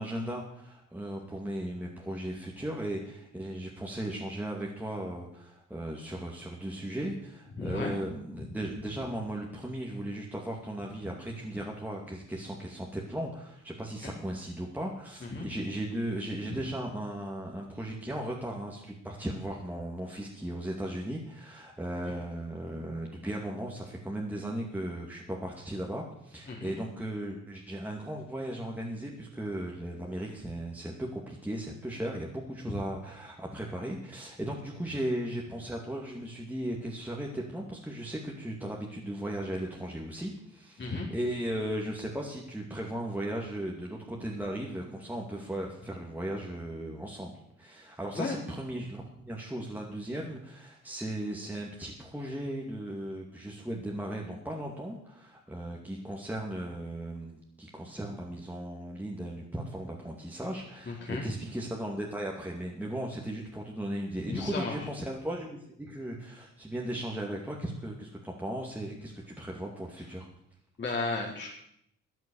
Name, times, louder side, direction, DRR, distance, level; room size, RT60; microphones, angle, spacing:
voice 1, 0.0-47.3 47.6-70.3, right 1 dB, 5° right, -2 dB, 2.3 m, -37 dB
voice 2, 7.6-7.9 8.4-8.5 14.0-14.1 15.3-15.5 16.5-16.6 22.1-22.2 26.5-26.7 40.8-41.1 48.1-48.4 60.9-61.2 64.3-64.7 70.8-71.5, left 3 dB, 40° left, -3 dB, 4.1 m, -34 dB
13.5 x 9.2 x 7.0 m, 0.73 s
cardioid pair, 90°, 30 cm